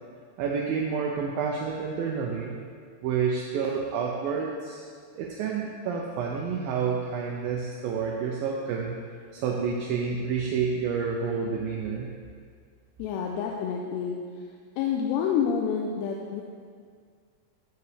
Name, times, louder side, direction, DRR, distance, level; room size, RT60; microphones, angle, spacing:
voice 1, 0.4-2.5 3.0-4.8 5.2-9.0 9.3-12.1, right 6 dB, 85° right, -1 dB, 2.1 m, -29 dB
voice 2, 13.0-14.2 14.8-16.4, left 7 dB, 90° left, 0 dB, 2.8 m, -28 dB
12.5 x 8.0 x 3.3 m, 2.1 s
omnidirectional pair, 4.9 m